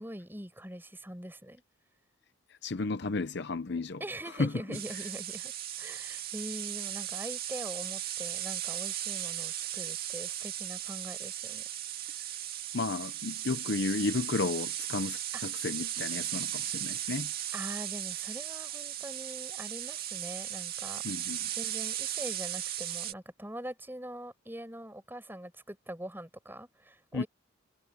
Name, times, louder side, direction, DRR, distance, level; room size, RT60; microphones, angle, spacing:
voice 1, 0.0-1.6 4.0-5.5 5.8-11.7 15.3-15.4 17.5-21.1 21.5-27.3, right 1 dB, 10° right, 5.2 m, -43 dB
voice 2, 2.6-4.0 4.4-4.5 12.7-17.3 21.0-21.5 27.1-27.2, left 3 dB, 50° left, 0.7 m, -33 dB
sound 1, 4.7-23.1, right 12 dB, 45° right, 2.0 m, -37 dB
head